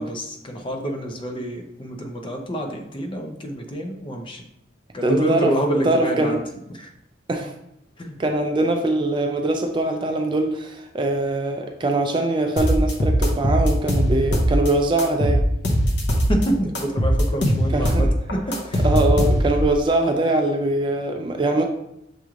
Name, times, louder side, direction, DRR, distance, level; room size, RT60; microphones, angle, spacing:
voice 1, 0.0-4.4 4.9-6.4 6.7-6.9 8.0-8.2 16.3-18.9, right 1 dB, 25° left, 2 dB, 0.6 m, -27 dB
voice 2, 5.0-5.5 5.8-6.4 7.3-7.5 8.2-15.4 17.7-18.1 18.8-21.6, right 2 dB, 25° right, 4 dB, 0.3 m, -22 dB
sound 1, 12.6-14.7 15.0-16.5 16.8-19.7, equal, 65° left, 0.8 m, -20 dB
6.5 x 3.1 x 2.4 m, 0.83 s
head